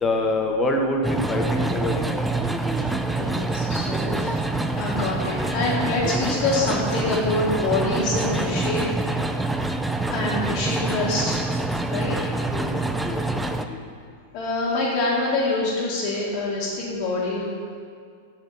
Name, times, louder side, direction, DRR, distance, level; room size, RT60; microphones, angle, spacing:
voice 1, 0.0-2.0 4.0-4.3 12.2-12.7 13.0-13.9, left 2 dB, 20° left, 2 dB, 1.3 m, -26 dB
sound 1, 1.0-13.6, right 2 dB, 5° right, 0.5 m, -26 dB
voice 2, 3.1-4.4 4.7-8.9 10.1-11.4 11.9-12.1 14.3-17.5, left 2 dB, 50° left, -9 dB, 2.3 m, -25 dB
6.6 x 6.4 x 5.9 m, 2.1 s
hypercardioid pair, 110°, 0 cm